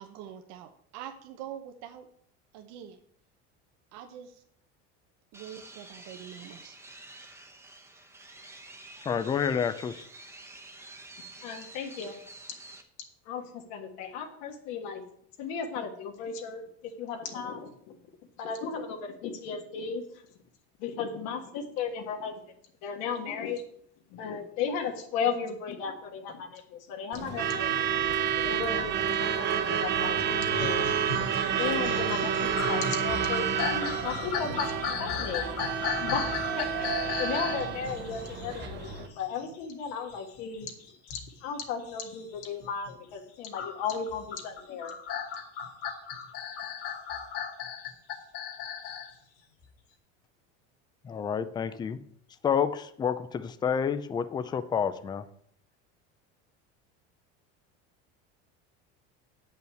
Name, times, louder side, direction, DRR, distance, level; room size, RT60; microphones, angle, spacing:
voice 1, 0.0-2.1 2.5-3.0 3.9-4.4 5.3-6.8, right 10 dB, 60° right, 5 dB, 1.0 m, -44 dB
sound 1, 5.3-12.8, right 2 dB, 10° right, 1.0 m, -49 dB
voice 2, 9.1-10.0 51.0-52.0 52.4-55.2, left 7 dB, 15° left, 11 dB, 0.5 m, -29 dB
voice 3, 11.4-12.2 13.3-15.0 15.4-16.6 17.0-17.7 18.4-20.0 20.8-22.3 22.8-23.6 24.1-27.8 28.4-30.9 31.6-35.4 36.0-36.3 36.6-36.9 37.2-40.7 41.1-44.9, left 6 dB, 65° left, 2 dB, 1.6 m, -35 dB
Truck / Alarm, 27.1-39.1, right 7 dB, 35° right, 1.0 m, -29 dB
sound 2, 30.5-42.9 43.5-49.1 49.6-49.7, left 7 dB, 50° left, 2.2 m, -36 dB
8.7 x 5.6 x 7.7 m, 0.64 s
cardioid pair, 150°, 31 cm